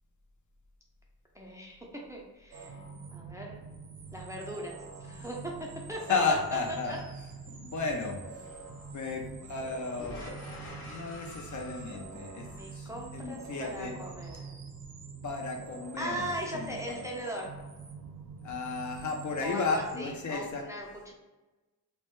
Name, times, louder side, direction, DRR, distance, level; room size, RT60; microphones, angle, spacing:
voice 1, 1.3-2.8 3.1-3.6 4.1-6.2 6.5-6.6 6.9-7.0 12.4-14.6 16.0-17.5 19.4-21.1, right 1 dB, 10° right, -1 dB, 0.4 m, -39 dB
sound 1, 2.5-20.0, right 4 dB, 65° right, 0.5 m, -46 dB
sound 2, 4.0-14.5, left 1 dB, 90° left, 0.7 m, -51 dB
voice 2, 6.1-6.9 7.5-8.2 8.9-10.2 10.8-12.5 12.7-14.0 15.2-16.7 18.4-20.6, left 4 dB, 55° left, 2 dB, 0.5 m, -33 dB
2.1 x 2.0 x 2.9 m, 1.1 s
wide cardioid pair, 75°, 37 cm